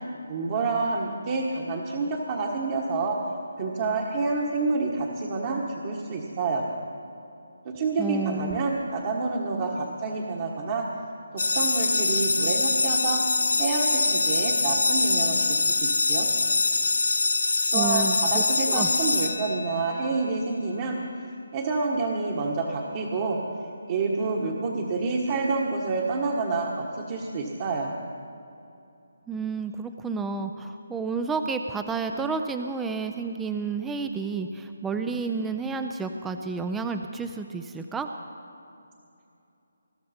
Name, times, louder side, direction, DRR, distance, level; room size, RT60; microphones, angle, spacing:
voice 1, 0.3-3.2 3.6-6.6 7.6-10.9 11.5-13.2 13.6-16.3 17.7-21.0 21.5-23.4 23.9-27.9, right 3 dB, 35° right, -2 dB, 1.4 m, -28 dB
voice 2, 8.0-8.6 17.7-18.9 29.3-38.1, right 4 dB, 5° right, 6 dB, 0.4 m, -30 dB
sound 1, 11.4-20.0, left 3 dB, 75° left, 0.7 m, -24 dB
21.0 x 12.5 x 4.4 m, 2.7 s
figure-of-eight pair, 160°, 0 cm